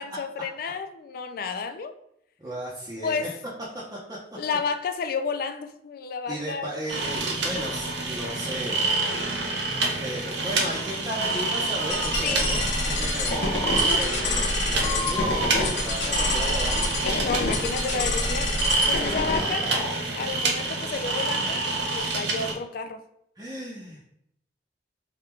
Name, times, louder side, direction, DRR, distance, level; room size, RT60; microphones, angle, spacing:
voice 1, 0.0-1.9 3.0-3.3 4.4-6.7 12.2-12.5 13.5-14.1 14.8-14.9 17.0-18.5 18.9-19.7 20.1-21.6 21.9-23.0, left 5 dB, 55° left, 0.4 m, -31 dB
voice 2, 2.4-3.3 3.9-4.2 6.3-8.8 9.9-13.3 13.6-16.9 23.4-24.1, right 1 dB, 20° right, 0.7 m, -35 dB
sound 1, 6.9-22.5, right 3 dB, 80° right, 0.8 m, -28 dB
Breathing, 11.8-12.6 13.3-14.0 14.8-15.7 16.6-17.0 18.2-18.3 18.5-18.7 19.3-20.0, left 2 dB, 20° left, 0.7 m, -33 dB
sound 2, 11.9-19.4, left 2 dB, 75° left, 0.8 m, -27 dB
3.5 x 2.3 x 4.4 m
head